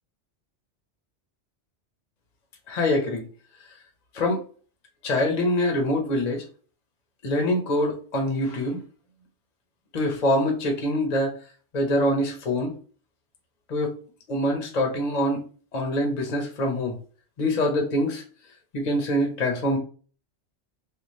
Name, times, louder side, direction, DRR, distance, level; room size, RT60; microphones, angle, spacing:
voice 1, 2.7-3.3 4.1-4.4 5.0-6.4 7.2-8.8 9.9-11.4 11.7-12.7 13.7-14.0 14.3-15.4 15.7-17.0 17.4-18.2 18.7-19.8, left 1 dB, 40° left, 2 dB, 0.8 m, -24 dB
3.6 x 2.3 x 3.0 m, 0.39 s
omnidirectional pair, 1.2 m